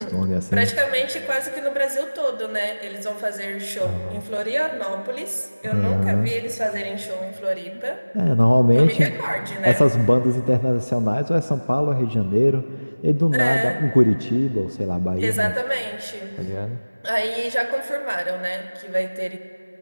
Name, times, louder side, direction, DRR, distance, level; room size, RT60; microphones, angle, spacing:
voice 1, 0.0-0.7 3.8-4.2 5.7-6.3 8.1-9.1 9.6-15.5 16.4-16.8, left 1 dB, 65° left, 9 dB, 0.4 m, -20 dB
voice 2, 0.5-8.0 8.7-9.8 13.3-13.8 15.2-16.5 17.0-19.4, right 1 dB, 45° right, 9 dB, 0.7 m, -26 dB
16.0 x 14.0 x 5.5 m, 2.8 s
figure-of-eight pair, 175°, 0 cm